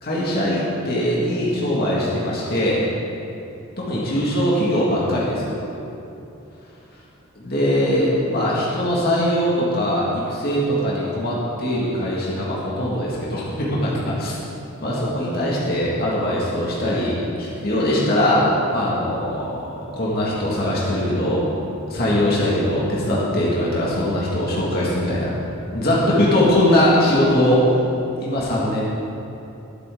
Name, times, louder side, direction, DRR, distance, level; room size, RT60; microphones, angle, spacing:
voice 1, 0.0-2.8 3.8-5.6 7.4-14.4 14.8-21.4 21.9-25.3 25.7-27.6 28.2-28.8, left 1 dB, 45° left, -6 dB, 2.2 m, -21 dB
20.5 x 8.0 x 3.9 m, 2.9 s
head